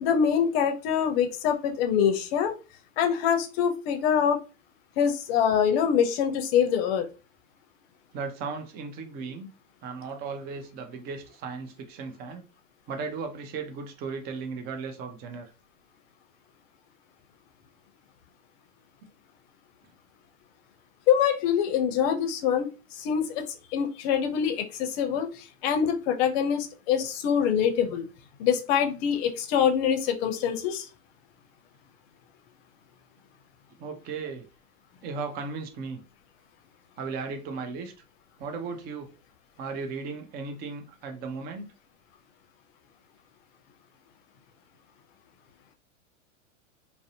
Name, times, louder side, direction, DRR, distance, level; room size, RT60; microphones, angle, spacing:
voice 1, 0.0-2.5 3.0-4.4 5.0-7.0 21.1-22.7 23.0-23.4 23.7-25.3 25.6-28.1 28.4-30.9, left 8 dB, 50° left, 0.6 m, -24 dB
voice 2, 8.1-9.5 9.8-12.4 12.9-15.5 33.8-34.4 35.0-36.0 37.0-37.9 38.4-39.1 39.6-41.7, right 4 dB, 25° right, 0.4 m, -36 dB
2.5 x 2.0 x 2.7 m
hypercardioid pair, 120°, 40 cm